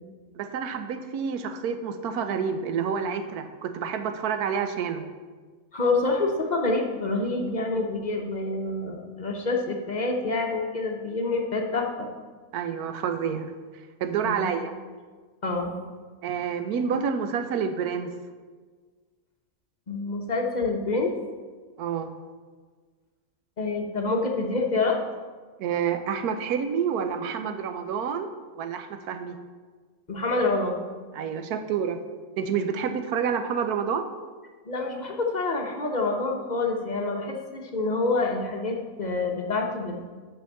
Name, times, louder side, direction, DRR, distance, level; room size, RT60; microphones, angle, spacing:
voice 1, 0.3-5.0 12.5-14.7 16.2-18.1 21.8-22.1 25.6-29.4 31.1-32.0 32.4-34.1, right 7 dB, 90° right, 8 dB, 1.2 m, -28 dB
voice 2, 5.7-12.1 14.2-14.5 15.4-15.8 19.9-21.1 23.6-25.0 30.1-30.8 34.7-40.1, left 3 dB, 35° left, 2 dB, 0.8 m, -27 dB
6.1 x 5.9 x 6.5 m, 1.5 s
omnidirectional pair, 1.6 m